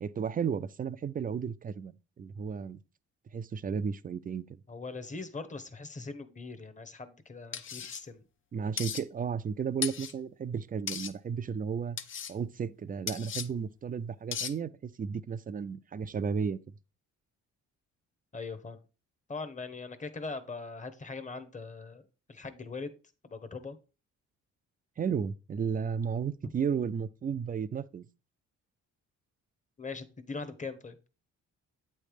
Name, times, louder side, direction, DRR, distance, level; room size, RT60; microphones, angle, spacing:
voice 1, 0.0-2.8 3.3-4.6 8.5-12.0 12.3-16.6 25.0-28.1, right 6 dB, 30° right, 0.4 m, -33 dB
voice 2, 4.7-8.2 18.3-18.8 19.3-22.0 22.3-23.0 23.2-23.8 26.4-26.5 29.8-31.0, left 4 dB, 25° left, 1.0 m, -41 dB
sound 1, 7.5-8.0 8.8-9.0 9.8-10.1 10.9-11.1 12.0-12.3 13.1-13.5 14.3-14.5, left 8 dB, 40° left, 0.6 m, -36 dB
8.4 x 3.3 x 5.0 m
cardioid pair, 90°, 30 cm